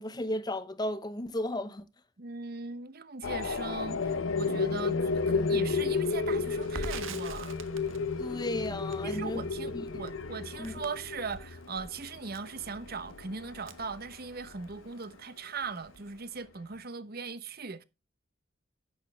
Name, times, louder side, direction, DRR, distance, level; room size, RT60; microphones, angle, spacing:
voice 1, 0.0-1.9 8.2-9.4 9.7-10.0 10.6-10.8, left 1 dB, 20° left, 0.8 m, -34 dB
voice 2, 2.2-7.6 9.0-17.8, right 4 dB, 50° right, 0.9 m, -39 dB
sound 1, 3.2-14.9, left 4 dB, 80° left, 0.8 m, -33 dB
Crackle, 6.6-14.7 15.0-15.1 15.5-16.2, right 3 dB, 80° right, 1.3 m, -46 dB
11.0 x 9.0 x 3.5 m
head